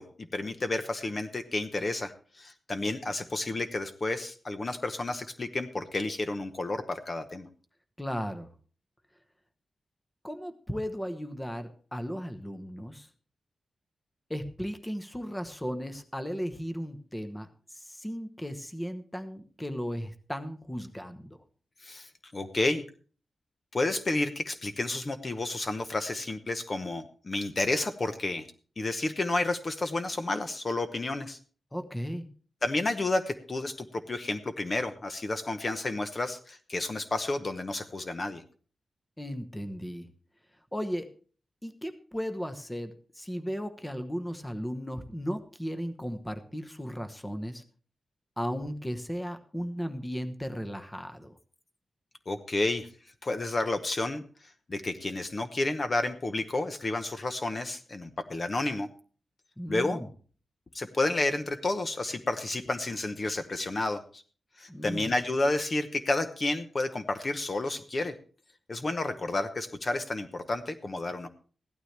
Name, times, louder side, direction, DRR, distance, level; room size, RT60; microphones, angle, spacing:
voice 1, 0.0-7.5 21.8-22.8 23.7-28.5 28.8-31.4 32.6-38.4 52.3-52.9 53.2-54.2 54.7-58.9 59.7-60.0 60.7-64.2 64.6-68.1 68.7-71.3, left 2 dB, 35° left, 8 dB, 0.9 m, -31 dB
voice 2, 8.0-8.5 10.2-13.1 14.3-21.4 31.7-32.3 39.2-40.1 40.7-41.1 41.6-47.6 48.4-51.4 59.6-60.1 64.7-65.1, equal, 10° left, 8 dB, 1.0 m, -36 dB
16.0 x 12.0 x 3.3 m, 0.40 s
wide cardioid pair, 135°, 0 cm